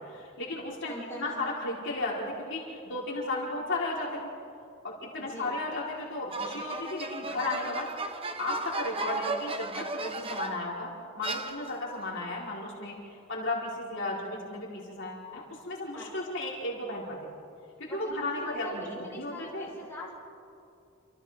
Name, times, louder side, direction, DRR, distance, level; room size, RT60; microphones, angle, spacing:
voice 1, 0.0-4.3 4.8-7.9 8.4-10.9 11.1-12.9 13.3-17.2 17.8-19.7, left 2 dB, 55° left, -4 dB, 4.3 m, -34 dB
voice 2, 0.9-1.4 5.2-5.6 15.9-16.1 17.8-20.1, equal, 10° left, -5 dB, 4.9 m, -43 dB
sound 1, 6.3-10.7 11.2-12.0, right 3 dB, 25° right, 1.0 m, -35 dB
29.0 x 27.0 x 3.7 m, 2.6 s
head